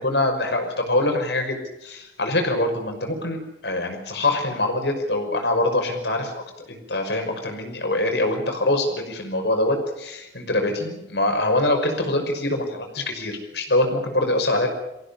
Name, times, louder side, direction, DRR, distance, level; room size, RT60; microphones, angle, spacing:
voice 1, 0.0-14.7, left 2 dB, 75° left, 4 dB, 5.8 m, -24 dB
24.0 x 16.5 x 8.5 m, 0.89 s
head